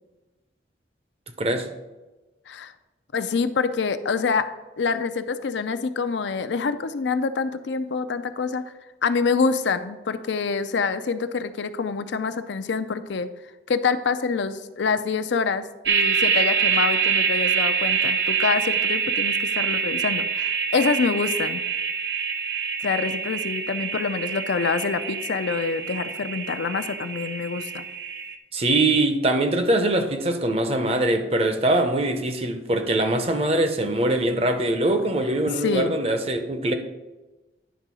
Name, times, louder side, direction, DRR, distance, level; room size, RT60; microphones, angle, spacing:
voice 1, 3.1-4.5 4.8-8.7 9.0-13.3 13.7-21.6 22.8-27.9 35.5-36.0, left 5 dB, 75° left, 11 dB, 0.5 m, -26 dB
sound 1, 15.8-28.3, right 6 dB, 70° right, 0.5 m, -25 dB
voice 2, 28.5-36.7, right 1 dB, 30° right, 7 dB, 0.7 m, -22 dB
10.5 x 3.7 x 6.1 m, 1.1 s
head